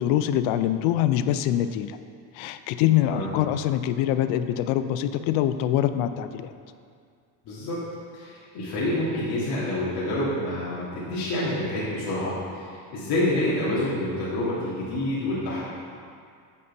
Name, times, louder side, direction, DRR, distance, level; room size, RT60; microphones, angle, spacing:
voice 1, 0.0-2.0 2.4-6.5, left 11 dB, 75° left, 11 dB, 0.5 m, -24 dB
voice 2, 3.0-3.3 7.5-7.8 8.1-15.6, left 1 dB, 55° left, -9 dB, 1.9 m, -28 dB
8.5 x 4.3 x 5.4 m, 2.2 s
cardioid pair, 115°, 45 cm